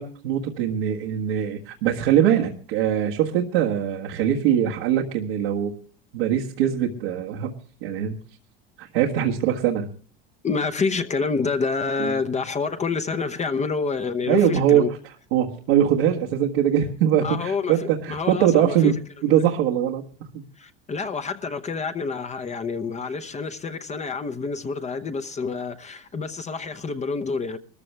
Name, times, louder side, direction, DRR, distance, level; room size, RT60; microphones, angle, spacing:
voice 1, 0.0-5.7 6.1-7.5 7.8-8.2 8.8-9.9 12.0-12.2 14.3-15.0 15.3-18.9 19.2-20.0, right 10 dB, 80° right, 1.7 m, -22 dB
voice 2, 10.4-14.9 17.2-18.9 20.6-27.6, left 4 dB, 25° left, 0.9 m, -28 dB
21.0 x 14.0 x 3.4 m
supercardioid pair, 110°, 30 cm